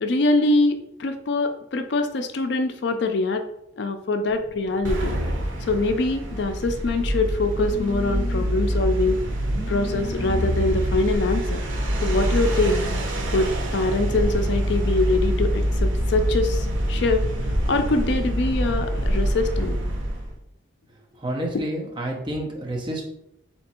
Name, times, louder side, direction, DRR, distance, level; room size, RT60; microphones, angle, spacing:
voice 1, 0.0-3.4 3.8-5.2 5.7-9.2 9.7-11.6 12.0-12.8 13.3-17.3 17.7-19.8 21.5-21.6, left 2 dB, 60° left, 7 dB, 0.4 m, -24 dB
Telephone, 4.3-12.3, left 3 dB, 40° left, 1.1 m, -40 dB
sound 1, 4.8-20.3, equal, 85° right, 0.8 m, -25 dB
voice 2, 21.2-23.0, right 1 dB, 25° right, -1 dB, 0.8 m, -29 dB
3.4 x 2.9 x 4.2 m, 0.83 s
head